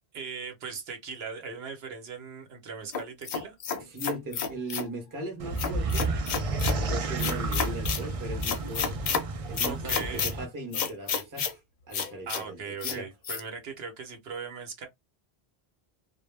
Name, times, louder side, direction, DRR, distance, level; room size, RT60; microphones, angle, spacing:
voice 1, 0.1-3.6 9.6-10.3 12.3-14.9, right 5 dB, 80° right, 0.9 m, -39 dB
sound 1, 2.9-4.9 5.6-6.8 7.2-8.0 8.4-9.2 9.6-10.3 10.7-11.5 11.9-12.4 12.8-13.0 13.2-13.4, left 6 dB, 55° left, 0.6 m, -30 dB
voice 2, 3.8-6.1 6.7-9.0 9.5-11.6 11.9-12.6 12.8-13.1, right 1 dB, 20° right, 0.7 m, -38 dB
sound 2, 5.4-10.5, right 2 dB, 55° right, 0.4 m, -31 dB
2.1 x 2.0 x 3.1 m
omnidirectional pair, 1.0 m